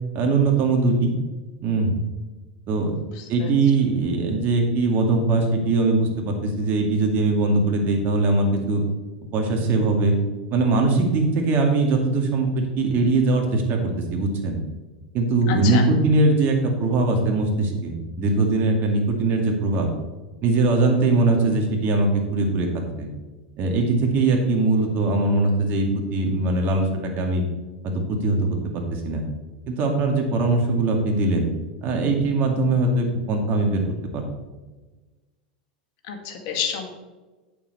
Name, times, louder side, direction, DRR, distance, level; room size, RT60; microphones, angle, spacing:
voice 1, 0.1-1.1 1.6-1.9 2.7-2.9 3.3-8.8 9.3-10.2 10.5-14.6 15.1-19.9 20.4-22.7 23.0-23.1 23.6-27.4 27.8-28.4 28.7-29.2 29.7-31.5 31.8-33.8 34.1-34.3, right 3 dB, 45° right, 2 dB, 2.2 m, -21 dB
voice 2, 3.0-3.5 15.5-15.9 36.0-36.9, left 7 dB, 60° left, 4 dB, 1.5 m, -30 dB
8.7 x 7.1 x 4.2 m, 1.2 s
hypercardioid pair, 100°, 5 cm